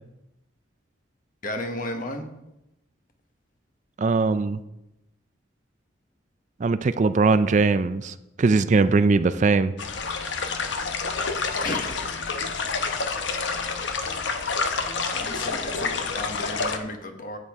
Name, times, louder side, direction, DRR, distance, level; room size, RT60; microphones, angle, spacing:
voice 1, 1.4-2.3 11.6-12.1 15.1-17.4, left 1 dB, 45° left, 5 dB, 1.2 m, -33 dB
voice 2, 4.0-4.6 6.6-9.7, right 4 dB, 40° right, 12 dB, 0.4 m, -20 dB
sound 1, 9.8-16.8, left 4 dB, 70° left, 0.9 m, -28 dB
12.5 x 8.3 x 3.6 m, 0.90 s
head